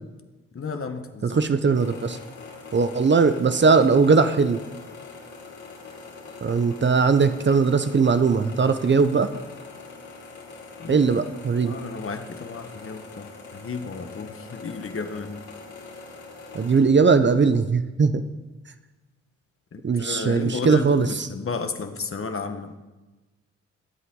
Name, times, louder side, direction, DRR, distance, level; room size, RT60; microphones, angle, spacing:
voice 1, 0.5-1.5 10.8-11.0 11.6-15.5 19.7-22.7, left 4 dB, 45° left, 7 dB, 1.4 m, -33 dB
voice 2, 1.2-2.2 2.7-4.6 6.4-9.4 10.9-11.8 16.5-18.2 19.8-21.3, right 5 dB, 35° right, 10 dB, 0.9 m, -20 dB
sound 1, 1.7-16.8, left 4 dB, 70° left, 3.5 m, -43 dB
22.0 x 8.2 x 3.9 m, 1.2 s
supercardioid pair, 50°, 31 cm